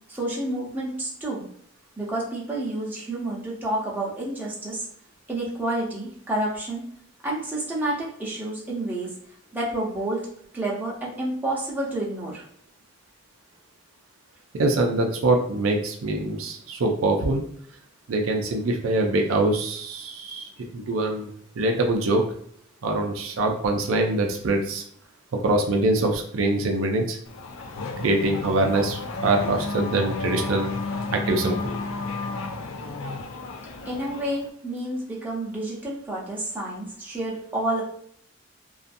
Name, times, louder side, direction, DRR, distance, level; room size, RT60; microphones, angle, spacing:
voice 1, 0.1-1.4 2.0-4.8 5.3-6.8 7.2-9.1 9.5-12.4 33.9-37.8, right 1 dB, 10° right, -6 dB, 0.7 m, -29 dB
voice 2, 14.5-17.4 18.1-21.3 21.6-22.2 22.8-24.8 25.4-27.2 28.0-30.7 31.1-31.6, right 2 dB, 80° right, 3 dB, 0.4 m, -24 dB
Race car auto racing / Accelerating revving vroom, 27.3-34.5, left 3 dB, 70° left, 0.4 m, -32 dB
2.5 x 2.3 x 2.5 m, 0.65 s
head